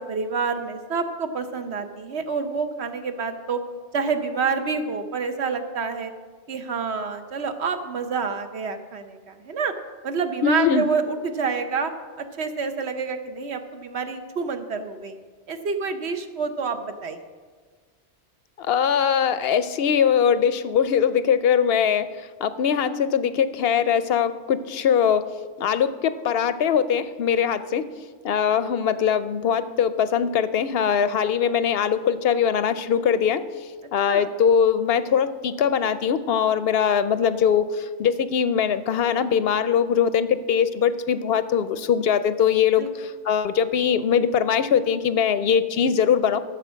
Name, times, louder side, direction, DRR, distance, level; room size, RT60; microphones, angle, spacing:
voice 1, 0.0-3.6 3.9-6.1 6.5-9.7 10.0-11.9 12.2-15.2 15.5-17.2 34.1-34.3 42.8-42.9, right 5 dB, 65° right, 7 dB, 1.2 m, -28 dB
voice 2, 10.4-10.8 18.6-22.1 22.4-25.3 25.6-27.9 28.2-33.4 33.9-46.4, left 7 dB, 65° left, 13 dB, 0.7 m, -21 dB
13.0 x 7.1 x 6.2 m, 1.5 s
omnidirectional pair, 1.2 m